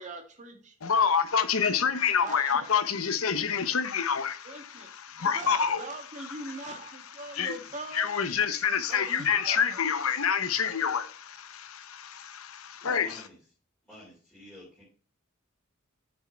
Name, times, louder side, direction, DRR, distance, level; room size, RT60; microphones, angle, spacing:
voice 1, 0.0-0.8 2.2-3.0 4.4-8.1 8.9-9.8 12.8-13.2, right 2 dB, 35° right, 2.0 m, -42 dB
voice 2, 0.8-5.8 7.3-7.5 7.9-13.2, left 7 dB, 85° left, 0.9 m, -27 dB
voice 3, 13.0-13.4 13.8-14.8, left 1 dB, 5° left, 3.5 m, -50 dB
7.9 x 6.2 x 4.4 m
head